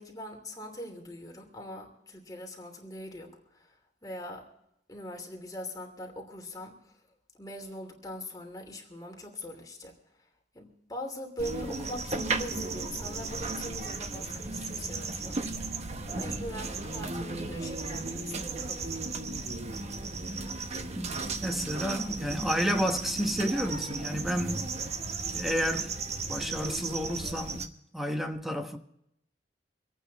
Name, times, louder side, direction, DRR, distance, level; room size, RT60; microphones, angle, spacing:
voice 1, 0.0-4.5 4.9-7.0 7.3-9.9 10.5-15.4 16.1-19.0, equal, 20° left, 2.9 m, -42 dB
sound 1, 11.4-27.7, right 3 dB, 40° right, 1.0 m, -35 dB
voice 2, 20.9-24.7 25.3-26.0 26.3-28.8, equal, ahead, 1.2 m, -31 dB
25.5 x 9.1 x 4.1 m
head